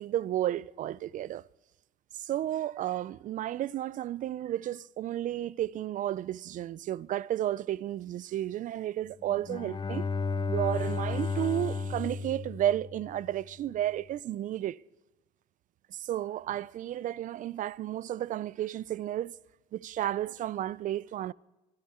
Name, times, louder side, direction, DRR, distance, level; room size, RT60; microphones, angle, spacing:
voice 1, 0.0-1.4 2.2-10.1 10.5-14.8 15.9-19.4 19.7-21.3, right 12 dB, 50° right, 0.4 m, -32 dB
Bowed string instrument, 9.3-13.4, left 4 dB, 25° left, 0.8 m, -33 dB
24.5 x 10.5 x 4.3 m
cardioid pair, 110°, 17 cm